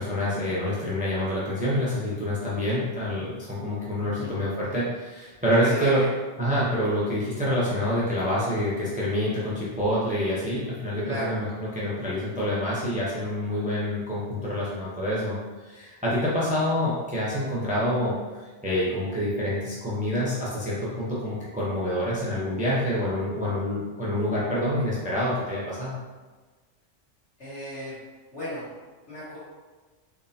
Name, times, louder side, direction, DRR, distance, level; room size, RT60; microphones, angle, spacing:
voice 1, 0.0-6.0 6.4-26.0, left 1 dB, 10° right, -7 dB, 0.6 m, -27 dB
voice 2, 4.0-4.4 5.6-6.1 11.0-11.4 27.4-28.0 28.3-28.7 29.1-29.4, right 1 dB, 65° left, -15 dB, 1.6 m, -33 dB
3.7 x 3.1 x 2.7 m, 1.4 s
omnidirectional pair, 1.3 m